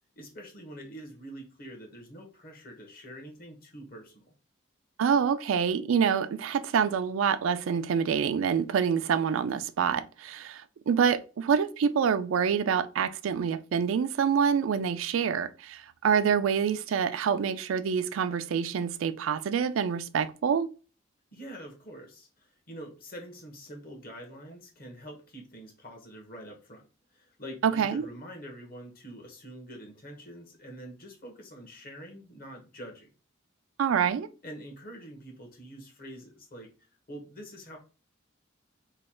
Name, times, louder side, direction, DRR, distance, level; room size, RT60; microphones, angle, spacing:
voice 1, 0.2-4.3 21.3-26.8 27.1-33.1 34.4-37.8, equal, 50° left, 1.1 m, -45 dB
voice 2, 5.0-20.7 27.6-28.1 33.8-34.3, right 7 dB, 85° right, 0.4 m, -26 dB
3.1 x 2.3 x 4.2 m
head